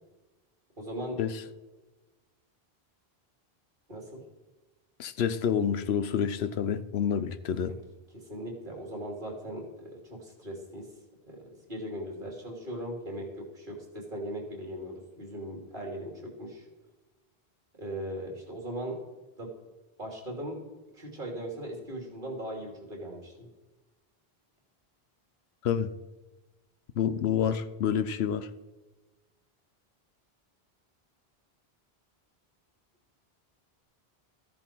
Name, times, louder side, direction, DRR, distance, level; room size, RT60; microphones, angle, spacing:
voice 1, 0.8-1.2 3.9-4.2 8.1-10.9 11.3-11.4 11.7-16.7 17.8-19.0 19.4-19.5 20.0-20.6 20.9-23.5, equal, 55° right, 3.0 m, -39 dB
voice 2, 5.0-7.7 25.6-25.9 27.0-28.5, left 8 dB, 85° left, 1.0 m, -28 dB
14.0 x 10.5 x 4.5 m
omnidirectional pair, 1.0 m